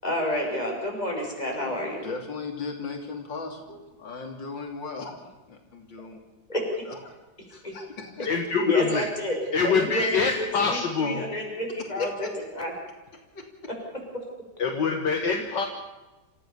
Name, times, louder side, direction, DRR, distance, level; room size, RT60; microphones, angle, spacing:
voice 1, 0.0-2.0 6.5-6.6 7.6-7.7 8.6-9.4 9.6-12.3 12.5-12.7, equal, 20° left, 0 dB, 6.1 m, -29 dB
voice 2, 1.6-5.2 5.5-6.2 6.5-7.1 7.5-8.3 12.0-12.3 13.1-13.5, left 4 dB, 90° left, 3 dB, 3.7 m, -37 dB
voice 3, 8.2-9.1 9.5-11.2 14.6-15.7, left 5 dB, 70° left, 3 dB, 2.3 m, -25 dB
28.0 x 15.0 x 7.1 m, 1.1 s
omnidirectional pair, 2.0 m